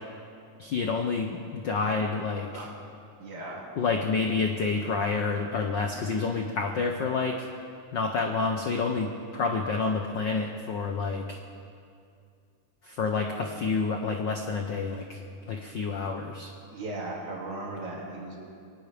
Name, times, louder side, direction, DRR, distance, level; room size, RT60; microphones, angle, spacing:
voice 1, 0.6-2.6 3.8-7.5 7.9-11.4 12.8-15.2 15.5-16.5, left 4 dB, 85° left, 3 dB, 1.0 m, -29 dB
voice 2, 3.2-3.6 16.7-18.4, right 2 dB, 90° right, -3 dB, 4.2 m, -37 dB
22.5 x 18.5 x 3.4 m, 2.4 s
omnidirectional pair, 3.3 m